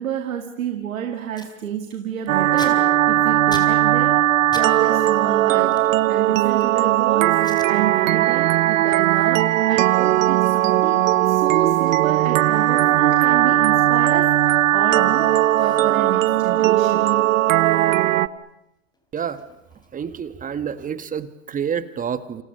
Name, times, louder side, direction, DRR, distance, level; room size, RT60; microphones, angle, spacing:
voice 1, 0.0-4.2 4.5-14.5 14.7-17.1, right 9 dB, 90° right, 6 dB, 2.5 m, -30 dB
Packing tape duct tape, 0.8-0.9 1.1-1.5 1.9-4.7 5.0-6.8 7.3-7.7 8.2-8.4 8.7-15.0 15.2-15.3 15.6-17.9 18.2-20.2, left 2 dB, 10° left, 4.3 m, -45 dB
sound 1, 2.3-18.3, right 13 dB, 75° right, 1.2 m, -18 dB
voice 2, 19.9-22.4, right 7 dB, 20° right, 13 dB, 1.5 m, -28 dB
29.5 x 27.0 x 6.7 m, 0.85 s
hypercardioid pair, 120°, 40 cm